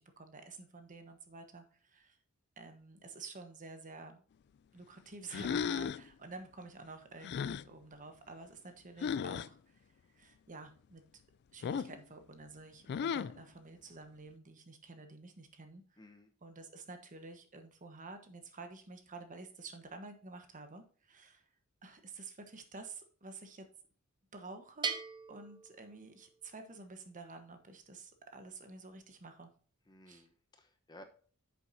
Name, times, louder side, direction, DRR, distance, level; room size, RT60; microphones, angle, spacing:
voice 1, 0.2-2.2 2.6-4.2 4.7-7.3 7.6-9.8 10.1-11.0 11.5-15.8 16.4-21.4 21.8-23.7 24.3-25.0 25.3-29.5 30.1-30.2, right 3 dB, 35° right, 7 dB, 1.2 m, -50 dB
sound 1, 5.3-6.1 7.2-7.7 9.0-9.5 11.6-12.0 12.9-13.4, left 7 dB, 50° left, 0.3 m, -35 dB
voice 2, 16.0-16.3 29.9-31.0, left 1 dB, 20° left, 6 dB, 0.9 m, -56 dB
Bell, 24.8-26.5, right 5 dB, 20° right, 0.6 m, -40 dB
9.3 x 7.0 x 2.7 m, 0.42 s
head